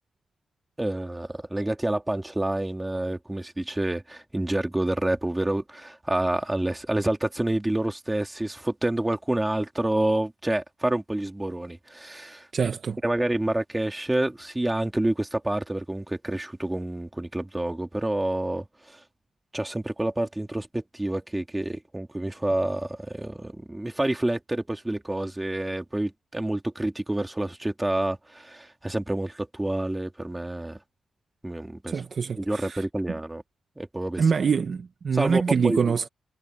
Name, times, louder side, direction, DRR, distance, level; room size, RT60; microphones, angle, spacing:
voice 1, 0.8-12.5 13.0-19.0 19.5-30.8 31.4-32.0 32.4-33.4 33.8-34.4 35.1-36.1, right 1 dB, 10° right, 2.4 m, -28 dB
voice 2, 12.5-13.0 31.9-32.8 34.2-36.1, right 6 dB, 45° right, 0.9 m, -25 dB
wide cardioid pair, 170°, 0 cm